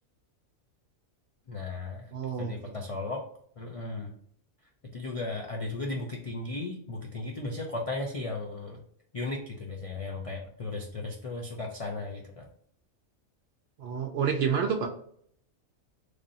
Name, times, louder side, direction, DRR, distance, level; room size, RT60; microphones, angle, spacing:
voice 1, 1.5-2.1 2.4-3.2 3.6-4.1 4.9-8.8 9.1-12.5, left 2 dB, 55° left, 0 dB, 0.3 m, -35 dB
voice 2, 2.1-2.9 13.8-14.9, right 7 dB, 65° right, 4 dB, 0.7 m, -29 dB
3.3 x 2.6 x 4.0 m, 0.64 s
omnidirectional pair, 1.4 m